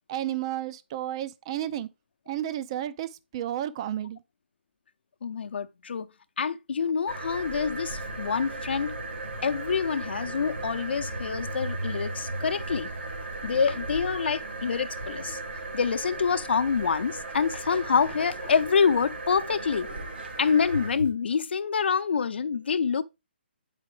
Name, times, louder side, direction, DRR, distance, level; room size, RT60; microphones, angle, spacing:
voice 1, 0.0-1.9 2.3-4.2, right 12 dB, 30° right, 0.4 m, -32 dB
voice 2, 5.2-6.1 6.4-9.0 9.4-12.9 13.4-15.4 15.7-19.9 20.4-23.0, left 6 dB, 70° left, 0.6 m, -26 dB
sound 1, 7.1-21.1, right 2 dB, 70° right, 2.0 m, -36 dB
8.1 x 4.8 x 3.2 m
hypercardioid pair, 160°, 6 cm